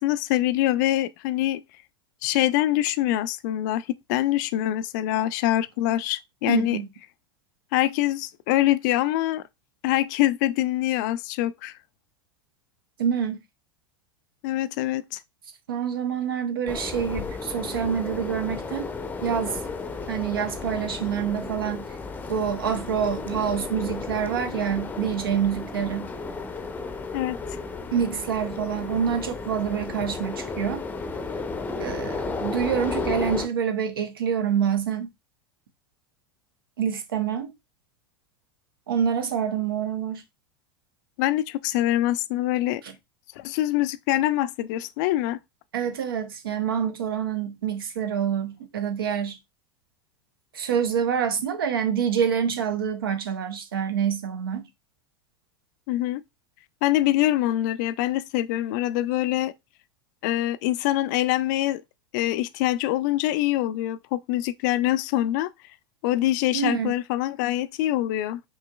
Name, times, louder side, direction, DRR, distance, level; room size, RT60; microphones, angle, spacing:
voice 1, 0.0-1.6 2.2-6.8 7.7-9.4 9.8-11.7 14.4-15.2 27.1-27.4 41.2-42.8 43.4-45.4 55.9-56.2 56.8-59.5 60.2-61.8 62.1-65.5 66.0-68.4, left 14 dB, 55° left, 0.4 m, -24 dB
voice 2, 6.5-6.9 13.0-13.4 15.7-18.9 19.2-19.6 20.1-21.9 22.3-26.1 27.9-30.8 31.8-35.1 36.8-37.5 38.9-40.2 42.8-42.9 45.7-49.4 50.5-54.7 66.5-66.9, right 8 dB, 75° right, 0.8 m, -26 dB
sound 1, 16.7-33.5, left 4 dB, 15° left, 0.6 m, -33 dB
5.4 x 3.0 x 2.3 m
figure-of-eight pair, 85°, 12 cm